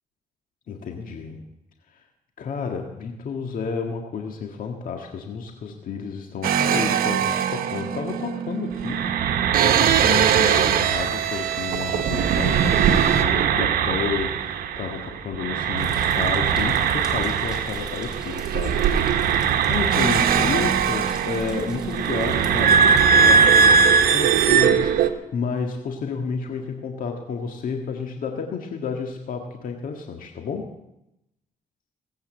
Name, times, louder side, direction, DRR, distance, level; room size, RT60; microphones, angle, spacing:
voice 1, 0.7-1.4 2.4-30.7, left 5 dB, 70° left, 3 dB, 1.8 m, -31 dB
sound 1, 6.4-15.1 15.3-25.1, right 7 dB, 85° right, 1.1 m, -20 dB
sound 2, 15.8-23.1, right 1 dB, 5° right, 2.8 m, -40 dB
19.0 x 8.6 x 8.0 m, 0.87 s
cardioid pair, 95°, 15 cm